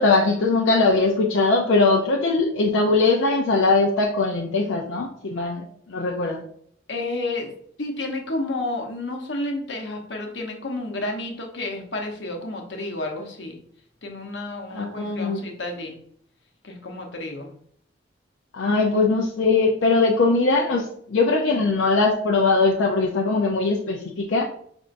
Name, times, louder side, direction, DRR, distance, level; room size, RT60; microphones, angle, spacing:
voice 1, 0.0-5.6 5.9-6.4 14.7-15.4 18.5-24.4, left 3 dB, 90° left, 0 dB, 0.5 m, -21 dB
voice 2, 6.9-7.5 7.8-13.6 14.0-16.0 16.6-17.5, left 2 dB, 70° left, 3 dB, 0.9 m, -31 dB
5.2 x 3.5 x 2.5 m, 0.63 s
head